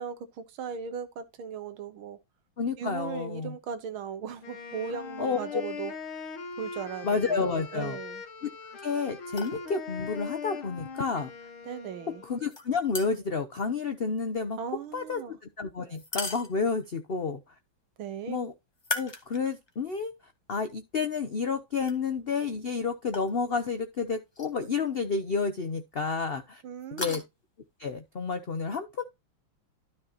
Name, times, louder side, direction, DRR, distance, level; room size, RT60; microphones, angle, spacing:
voice 1, 0.0-2.2 2.8-5.9 6.6-8.2 11.7-12.2 14.6-15.4 18.0-18.4 26.6-27.2, right 7 dB, 85° right, 2.0 m, -37 dB
voice 2, 2.6-3.5 5.2-5.6 7.0-8.0 8.4-8.5 8.8-11.3 12.2-14.6 14.9-17.4 18.3-18.5 18.9-20.1 20.5-26.6 27.0-27.2 27.8-29.0, left 5 dB, 60° left, 0.6 m, -30 dB
Wind instrument woodwind instrument, 4.4-12.5, left 5 dB, 80° left, 2.3 m, -41 dB
sound 1, 9.3-9.6 12.5-13.4 15.9-16.9 18.8-19.7 20.2-20.3 21.8-22.0 23.1-23.3 24.3-24.6 24.9-25.0 26.8-27.2, left 2 dB, 15° left, 1.1 m, -37 dB
12.5 x 5.7 x 2.9 m
omnidirectional pair, 2.2 m